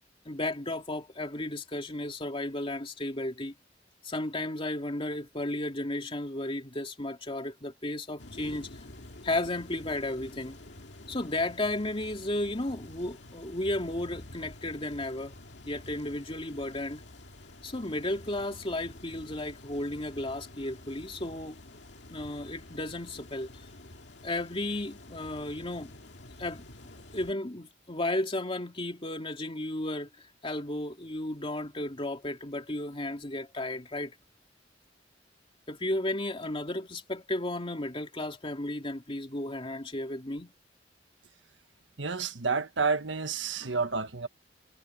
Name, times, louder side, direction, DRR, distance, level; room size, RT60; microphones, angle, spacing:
voice 1, 0.0-3.5 4.0-8.7 9.2-10.6 11.1-15.3 15.7-17.0 17.6-21.6 22.1-23.6 24.2-25.9 26.4-26.7 27.1-30.1 30.4-34.1 35.7-40.5, left 1 dB, 30° left, 2.8 m, -34 dB
sound 1, 8.2-27.3, left 1 dB, 65° left, 2.2 m, -49 dB
voice 2, 42.0-44.3, right 4 dB, 80° right, 1.5 m, -30 dB
head